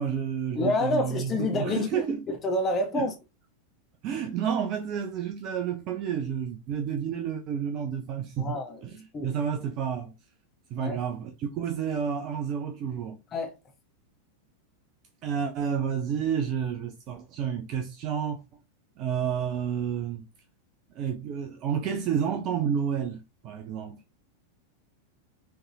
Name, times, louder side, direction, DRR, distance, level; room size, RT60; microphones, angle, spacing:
voice 1, 0.0-2.2 2.9-3.1 4.0-8.6 8.8-10.1 10.7-13.2 15.2-18.4 19.0-20.2 20.9-24.0, right 8 dB, 40° right, 0.8 m, -30 dB
voice 2, 0.5-2.0 2.3-3.1 8.4-8.8 9.1-9.3 10.8-11.0 13.3-13.6, left 2 dB, 25° left, 1.0 m, -28 dB
5.7 x 3.5 x 2.7 m
figure-of-eight pair, 90°, 0 cm